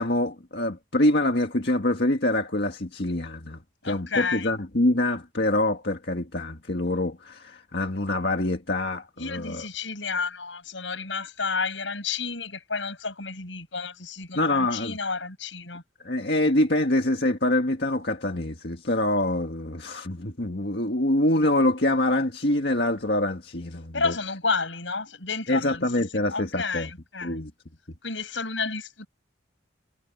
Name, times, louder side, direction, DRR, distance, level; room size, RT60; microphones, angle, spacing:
voice 1, 0.0-9.7 14.3-15.0 16.0-24.1 25.5-26.9 27.2-27.5, left 1 dB, 60° left, 1.8 m, -25 dB
voice 2, 3.8-4.5 9.2-15.8 23.9-25.9 26.2-27.4 28.0-29.1, left 4 dB, 85° left, 7.2 m, -31 dB
head